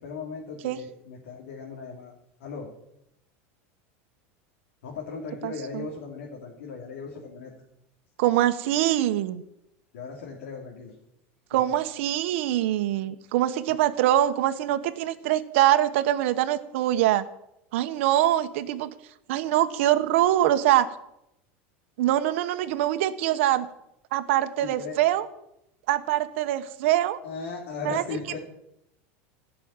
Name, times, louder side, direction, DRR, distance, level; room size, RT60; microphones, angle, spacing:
voice 1, 0.0-2.7 4.8-7.5 9.9-11.0 11.5-11.6 24.6-25.0 27.2-28.4, left 5 dB, 85° left, -2 dB, 2.9 m, -37 dB
voice 2, 5.4-5.8 8.2-9.4 11.5-17.2 17.7-18.9 19.3-20.9 22.0-23.7 24.1-25.2 25.9-27.2 27.8-28.0, right 13 dB, 75° right, 10 dB, 1.1 m, -24 dB
15.0 x 6.2 x 8.8 m, 0.82 s
supercardioid pair, 135°, 7 cm